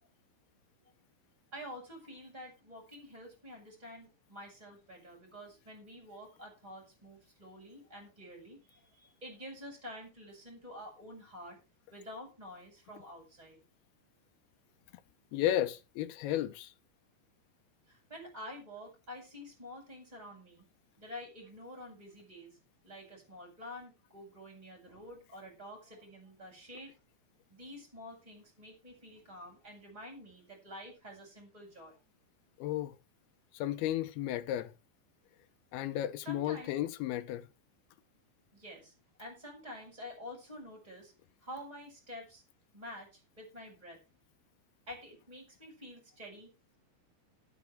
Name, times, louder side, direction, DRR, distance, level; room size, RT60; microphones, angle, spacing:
voice 1, 1.5-11.6 11.9-13.6 17.9-20.7 21.0-22.6 22.8-26.9 27.5-32.0 36.2-36.7 38.5-38.9 39.2-41.1 41.4-42.4 42.7-44.0 44.9-46.5, left 1 dB, 10° right, 5.4 m, -48 dB
voice 2, 15.3-16.7 32.6-32.9 33.5-34.7 35.7-37.5, left 12 dB, 75° left, 2.5 m, -33 dB
19.5 x 7.4 x 3.4 m
omnidirectional pair, 5.2 m